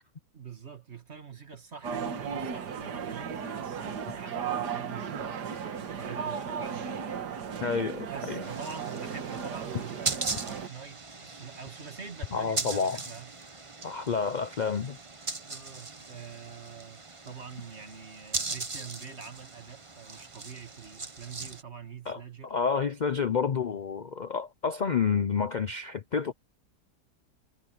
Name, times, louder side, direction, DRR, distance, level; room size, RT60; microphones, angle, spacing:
voice 1, 0.3-7.1 8.1-13.3 15.5-22.6, right 6 dB, 40° right, 2.4 m, -45 dB
sound 1, 1.8-10.7, right 7 dB, 85° right, 2.0 m, -35 dB
voice 2, 7.6-8.4 12.3-13.0 13.8-15.0 22.1-26.3, left 6 dB, 70° left, 0.4 m, -29 dB
sound 2, 8.4-21.6, right 3 dB, 25° right, 0.9 m, -39 dB
omnidirectional pair, 1.7 m